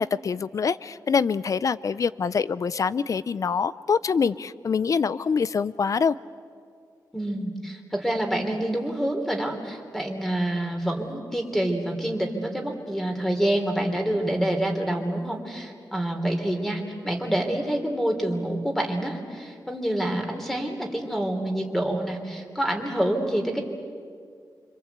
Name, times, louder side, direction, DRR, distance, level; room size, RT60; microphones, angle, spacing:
voice 1, 0.0-6.2, left 6 dB, 50° left, 17 dB, 0.6 m, -25 dB
voice 2, 7.1-23.6, right 1 dB, 5° left, 3 dB, 3.3 m, -27 dB
26.0 x 25.0 x 8.2 m, 2.2 s
wide cardioid pair, 130°, 7 cm